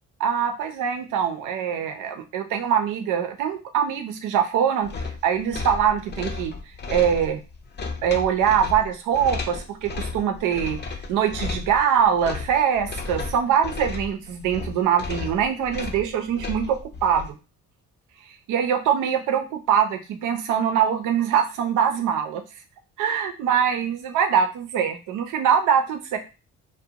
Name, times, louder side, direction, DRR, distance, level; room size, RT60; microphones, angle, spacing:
voice 1, 0.2-6.5 6.9-7.4 8.0-10.8 11.1-17.4 18.5-22.4 23.0-26.2, right 8 dB, 85° right, 7 dB, 0.6 m, -23 dB
sound 1, 4.8-17.3, left 3 dB, 35° left, 0.5 m, -33 dB
2.4 x 2.2 x 2.8 m, 0.30 s
cardioid pair, 90°, 30 cm